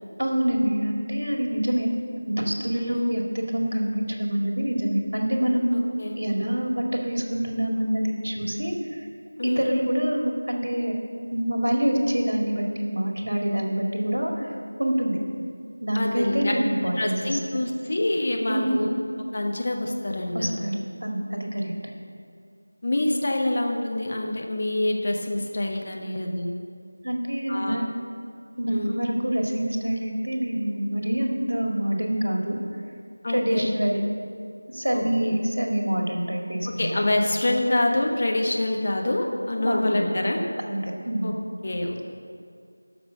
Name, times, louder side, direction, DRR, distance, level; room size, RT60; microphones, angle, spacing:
voice 1, 0.2-1.9 2.3-9.1 9.4-10.9 11.3-15.2 15.8-17.6 18.5-18.9 20.3-21.7 27.0-27.9 28.6-32.6 33.3-34.0 34.7-36.9 39.6-40.1 40.6-41.3, right 1 dB, 75° right, 1 dB, 2.1 m, -26 dB
voice 2, 2.8-3.1 6.0-6.2 9.4-9.8 15.9-16.5 17.0-18.9 19.3-20.5 22.8-26.5 27.5-27.8 28.7-29.0 33.2-33.7 34.9-35.0 36.8-40.4 41.2-41.3 41.6-42.1, left 1 dB, 35° left, 1 dB, 1.2 m, -26 dB
13.0 x 5.9 x 6.6 m, 2.3 s
figure-of-eight pair, 170°, 0 cm